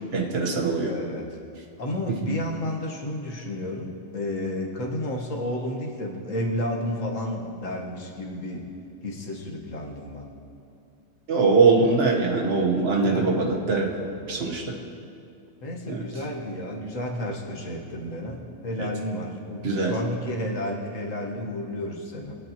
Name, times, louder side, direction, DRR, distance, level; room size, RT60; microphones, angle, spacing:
voice 1, 0.1-0.9 2.3-2.4 11.3-13.9 14.3-14.7 15.9-16.0 18.8-18.9 19.6-19.9, right 4 dB, 50° right, 0 dB, 1.4 m, -22 dB
voice 2, 0.9-1.4 1.8-8.7 9.0-10.3 13.0-14.3 15.6-22.4, left 1 dB, 75° left, 0 dB, 1.8 m, -32 dB
22.0 x 8.6 x 3.0 m, 2.5 s
omnidirectional pair, 1.3 m